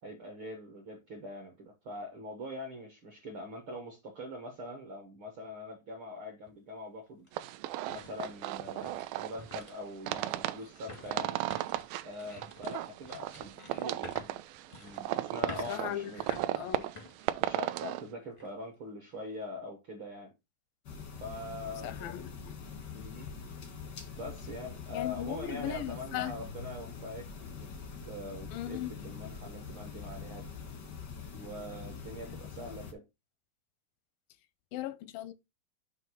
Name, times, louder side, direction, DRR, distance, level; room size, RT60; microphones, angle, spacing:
voice 1, 0.0-7.3 7.9-11.4 12.0-14.4 14.8-16.2 17.4-20.3 21.2-22.2 22.9-23.3 24.2-27.7 28.0-30.6 31.3-33.0, left 1 dB, 65° right, 1.3 m, -43 dB
sound 1, 6.4-6.5 7.1-18.0 18.4-18.5 19.1-19.4, left 2 dB, 30° left, 0.5 m, -51 dB
sound 2, 7.3-18.0, right 15 dB, 85° right, 2.2 m, -36 dB
voice 2, 15.7-16.9 21.8-22.3 23.4-23.6 24.9-26.4 28.5-29.1 34.7-35.3, left 12 dB, 85° left, 2.3 m, -38 dB
sound 3, 20.8-32.9, left 6 dB, 70° left, 1.0 m, -44 dB
7.8 x 2.7 x 5.6 m
omnidirectional pair, 4.1 m